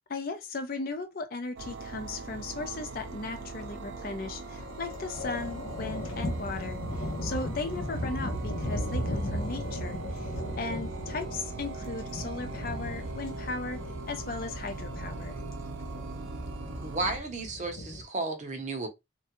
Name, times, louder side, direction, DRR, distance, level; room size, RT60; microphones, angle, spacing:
voice 1, 0.1-10.3 10.5-13.8 14.1-15.4, left 3 dB, 45° left, 0.4 m, -37 dB
sound 1, 1.6-17.2, right 3 dB, 75° right, 0.5 m, -41 dB
sound 2, 4.5-18.0, equal, 90° left, 0.7 m, -37 dB
voice 2, 16.8-18.9, right 2 dB, 35° right, 0.7 m, -33 dB
3.2 x 2.2 x 2.9 m
head